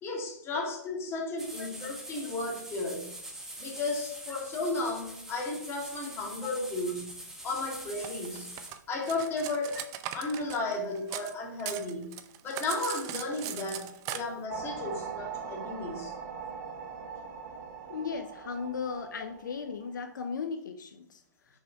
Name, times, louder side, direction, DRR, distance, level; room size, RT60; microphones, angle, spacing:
voice 1, 0.0-3.1 3.6-7.2 7.4-8.5 8.9-9.8 10.1-12.2 12.4-16.2, left 2 dB, 25° left, 0 dB, 2.1 m, -34 dB
sound 1, 1.4-8.7, right 1 dB, 5° right, 1.4 m, -44 dB
Cutlery silverware, 8.0-11.3 11.6-14.2, right 12 dB, 35° right, 0.7 m, -39 dB
sound 2, 14.5-20.2, right 6 dB, 60° right, 1.6 m, -41 dB
voice 2, 17.9-21.2, left 5 dB, 75° left, 7 dB, 0.7 m, -36 dB
6.5 x 5.1 x 4.6 m, 0.70 s
hypercardioid pair, 120°, 10 cm